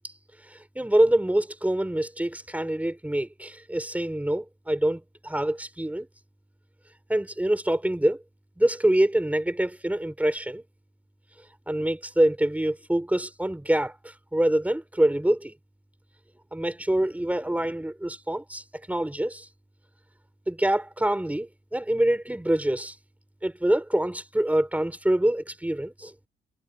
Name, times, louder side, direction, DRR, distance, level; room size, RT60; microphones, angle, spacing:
voice 1, 0.5-6.1 7.1-8.2 8.6-10.6 11.7-15.5 16.5-19.5 20.5-22.9 23.4-26.1, right 1 dB, 5° right, 5.1 m, -25 dB
cardioid pair, 90°, 20 cm